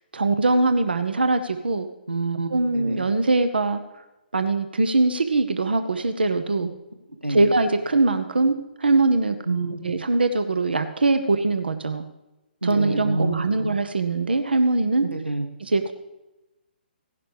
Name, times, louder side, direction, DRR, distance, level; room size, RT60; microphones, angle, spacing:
voice 1, 0.1-1.9 2.5-3.8 4.3-6.7 7.3-9.4 9.8-12.0 12.6-15.1 15.6-15.9, right 3 dB, 70° right, 10 dB, 0.8 m, -22 dB
voice 2, 2.1-3.0 6.6-6.7 7.2-7.5 9.5-9.9 12.6-13.7 15.1-15.4, right 2 dB, 90° right, 5 dB, 1.7 m, -27 dB
16.0 x 11.0 x 3.4 m, 1.0 s
figure-of-eight pair, 130°, 6 cm